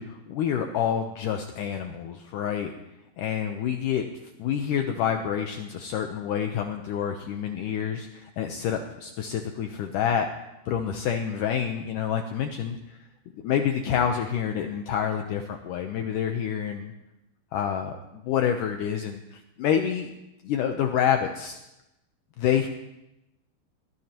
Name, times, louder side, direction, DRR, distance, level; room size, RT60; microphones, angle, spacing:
voice 1, 0.0-2.7 3.2-4.0 4.4-10.3 10.7-12.8 13.4-16.9 17.5-20.1 20.4-21.6 22.4-22.7, left 8 dB, 85° left, 4 dB, 1.8 m, -27 dB
21.5 x 17.5 x 3.0 m, 0.93 s
omnidirectional pair, 4.8 m